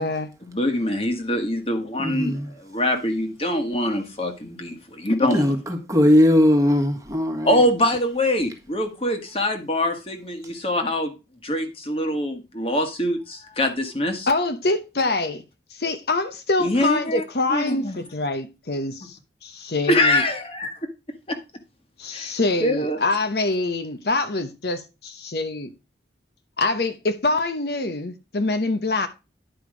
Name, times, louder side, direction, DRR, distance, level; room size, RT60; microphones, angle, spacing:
voice 1, 0.5-5.4 7.4-11.1 11.4-14.3 16.6-17.2 17.5-18.0 19.9-20.7 21.3-21.4 22.1-22.3 22.6-23.0, left 1 dB, 30° left, 1.6 m, -24 dB
voice 2, 2.0-2.5 5.3-7.7, left 1 dB, 20° right, 1.5 m, -19 dB
voice 3, 14.3-15.4 15.7-19.2 19.4-20.2 22.0-25.7 26.6-29.1, left 2 dB, 60° left, 0.9 m, -25 dB
10.0 x 5.1 x 5.0 m
head